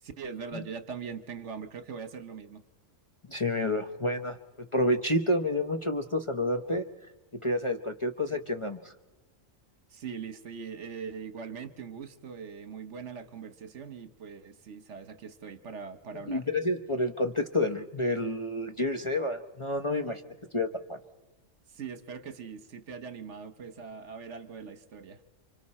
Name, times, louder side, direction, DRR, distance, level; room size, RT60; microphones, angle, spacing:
voice 1, 0.0-2.6 9.9-16.4 21.7-25.2, right 6 dB, 60° right, 10 dB, 1.4 m, -41 dB
voice 2, 3.3-6.9 7.4-8.9 16.3-20.2 20.5-21.0, left 1 dB, 25° left, 5 dB, 0.8 m, -29 dB
29.5 x 25.0 x 4.3 m, 1.1 s
omnidirectional pair, 1.4 m